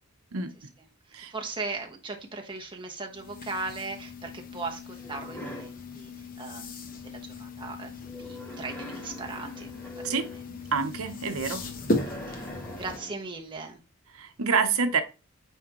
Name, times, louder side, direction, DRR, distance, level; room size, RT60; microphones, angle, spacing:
voice 1, 1.1-7.9 8.2-10.0 12.3-13.8, right 3 dB, 20° right, 1.1 m, -38 dB
sound 1, 3.1-13.0, left 2 dB, 40° left, 0.9 m, -37 dB
sound 2, 5.0-5.8 8.0-10.5 11.9-13.3, left 1 dB, 10° left, 1.2 m, -42 dB
voice 2, 10.7-11.6 14.1-15.0, right 5 dB, 75° right, 0.9 m, -27 dB
9.0 x 3.5 x 3.0 m
head